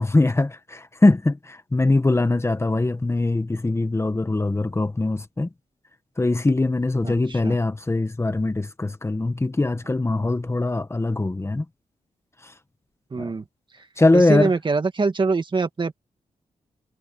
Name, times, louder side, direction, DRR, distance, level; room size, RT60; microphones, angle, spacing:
voice 1, 0.0-5.5 6.2-11.6 14.0-14.5, left 2 dB, 20° left, 1.6 m, -22 dB
voice 2, 7.0-7.6 13.1-13.4 14.1-16.0, right 4 dB, 40° right, 2.0 m, -24 dB
cardioid pair, 95°, 13 cm